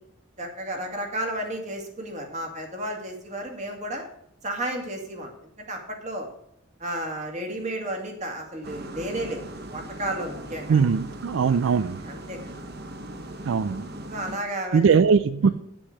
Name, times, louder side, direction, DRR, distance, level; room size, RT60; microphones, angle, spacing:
voice 1, 0.4-4.0 4.4-5.3 5.6-6.3 6.8-9.4 9.7-10.8 12.1-12.4 13.2-13.3 14.1-14.9 15.4-15.5, right 1 dB, 35° right, 2.1 m, -32 dB
sound 1, 8.6-14.4, right 1 dB, 55° right, 1.1 m, -39 dB
voice 2, 10.7-12.0 13.4-13.8 14.7-15.5, right 5 dB, 80° right, 0.4 m, -20 dB
9.8 x 6.1 x 6.5 m
head